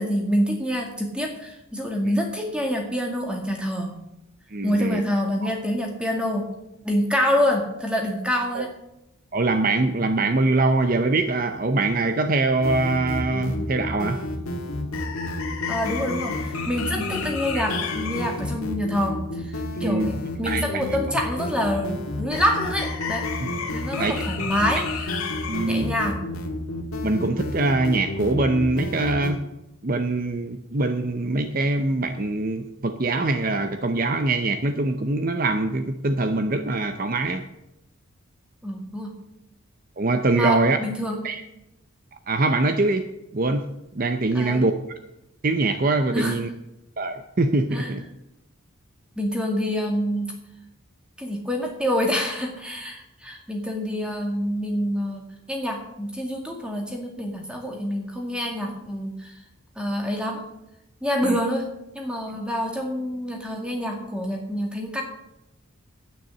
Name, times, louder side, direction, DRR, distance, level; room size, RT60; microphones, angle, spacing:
voice 1, 0.0-3.9 4.6-6.4 6.8-8.7 15.7-23.3 23.7-25.2 25.7-26.2 38.6-39.1 40.3-41.3 44.3-44.7 46.1-46.4 47.7-47.9 49.2-50.3 51.2-59.3 59.8-60.4 61.0-61.7 61.9-65.0, equal, 5° right, 1 dB, 2.1 m, -26 dB
voice 2, 4.5-5.0 5.4-5.5 8.5-8.7 9.3-14.2 17.0-17.1 17.5-17.6 19.8-20.1 20.5-20.8 24.0-24.5 25.5-25.9 27.0-29.4 29.8-37.4 40.0-40.8 41.2-41.4 42.3-43.1 43.3-43.7 44.0-44.7 45.4-46.5 47.0-48.0 61.2-61.4, right 2 dB, 40° right, 8 dB, 0.6 m, -23 dB
sound 1, 12.6-29.3, left 2 dB, 80° left, 2.0 m, -30 dB
10.0 x 9.4 x 7.5 m, 0.89 s
head